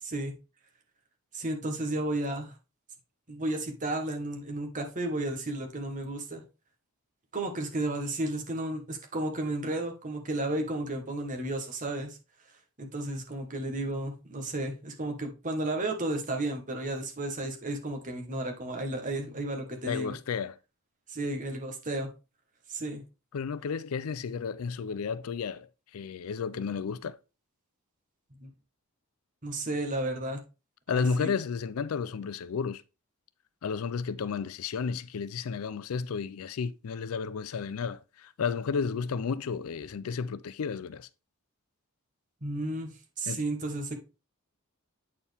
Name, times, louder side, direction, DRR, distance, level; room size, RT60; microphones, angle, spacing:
voice 1, 1.3-2.5 3.3-6.4 7.3-12.2 12.8-20.2 21.1-22.1 22.7-23.0 28.4-28.5 29.4-30.4 30.9-31.3 42.4-43.9, right 1 dB, 35° right, 1.3 m, -33 dB
voice 2, 19.9-20.6 23.3-27.2 30.9-32.8 33.6-41.1 43.3-43.4, left 5 dB, 70° left, 0.4 m, -32 dB
8.5 x 4.4 x 3.4 m
head